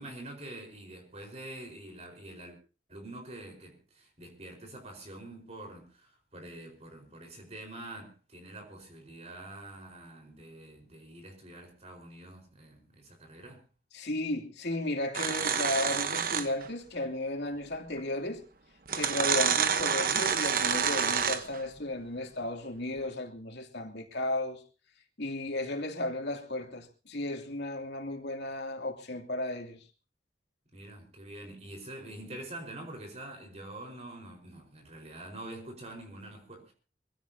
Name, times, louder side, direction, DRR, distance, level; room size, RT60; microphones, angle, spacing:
voice 1, 0.0-2.6 2.9-13.6 30.7-36.7, right 1 dB, 40° right, 4.8 m, -46 dB
voice 2, 13.9-18.4 18.9-24.6 25.2-29.8, left 1 dB, 75° left, 2.8 m, -34 dB
sound 1, 15.1-16.7 18.0-18.1 18.9-21.6, right 7 dB, 55° right, 1.1 m, -28 dB
25.0 x 16.0 x 2.8 m
head